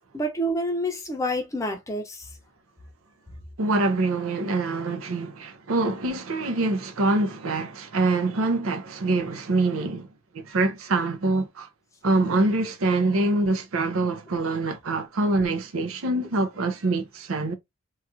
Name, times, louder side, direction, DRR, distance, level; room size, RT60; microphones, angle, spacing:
voice 1, 0.1-2.3, equal, 15° left, 0.6 m, -28 dB
voice 2, 3.6-10.1 10.3-11.7 12.0-17.5, right 2 dB, 90° right, 0.6 m, -25 dB
3.1 x 2.4 x 2.6 m
head